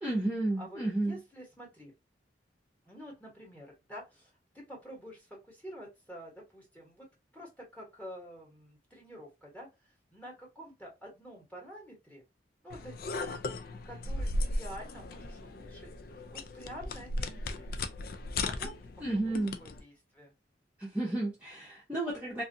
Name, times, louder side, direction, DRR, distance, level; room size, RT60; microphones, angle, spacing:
voice 1, 0.0-1.2 19.0-19.5 20.8-22.4, right 2 dB, 10° right, 0.8 m, -32 dB
voice 2, 0.6-1.9 2.8-7.1 7.3-12.2 12.6-13.3 13.8-15.9 16.3-17.8 18.4-18.7 19.3-20.3, equal, 10° left, 1.2 m, -48 dB
sound 1, 12.7-19.8, left 2 dB, 55° left, 0.4 m, -37 dB
2.6 x 2.4 x 2.6 m
head